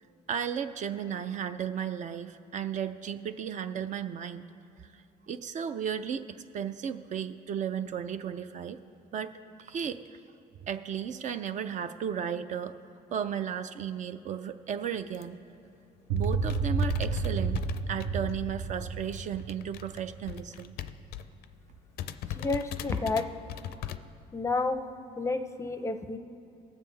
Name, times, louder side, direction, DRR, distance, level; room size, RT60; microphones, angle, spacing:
voice 1, 0.3-4.5 4.8-6.2 6.5-8.8 9.1-9.3 9.6-10.2 10.7-12.8 13.1-15.4 16.1-17.6 17.9-20.8, right 8 dB, 45° right, 10 dB, 0.4 m, -34 dB
sound 1, 15.1-15.4 15.9-16.0 16.2-18.5 18.8-21.4 21.7-21.8 22.0-24.0, left 11 dB, 70° left, 0.4 m, -39 dB
sound 2, 16.1-20.4, right 4 dB, 85° right, 0.8 m, -31 dB
voice 2, 22.3-23.3 24.3-24.8 25.2-26.2, left 3 dB, 15° left, 8 dB, 0.5 m, -30 dB
19.0 x 7.3 x 3.3 m, 2.9 s
cardioid pair, 110°, 17 cm